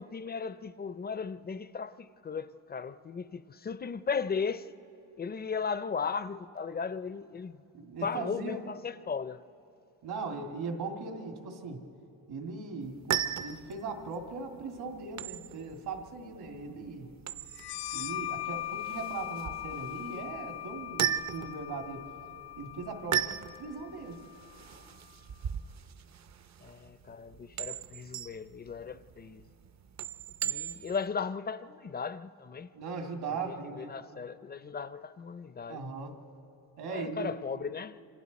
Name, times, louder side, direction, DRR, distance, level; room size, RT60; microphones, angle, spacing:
voice 1, 0.0-4.7 5.2-7.6 8.0-9.4 26.6-29.5 30.4-32.7 33.3-35.8 36.8-38.0, left 5 dB, 25° left, 0.5 m, -36 dB
voice 2, 7.7-8.6 10.0-11.8 12.3-17.1 17.9-22.1 22.6-23.3 23.6-24.2 32.7-33.9 35.7-36.2 36.8-37.4, right 4 dB, 75° right, 2.6 m, -39 dB
sound 1, 12.8-31.1, right 10 dB, 45° right, 0.6 m, -38 dB
sound 2, 17.5-24.9, left 14 dB, 90° left, 0.7 m, -40 dB
28.0 x 26.0 x 4.1 m
cardioid pair, 130°, 38 cm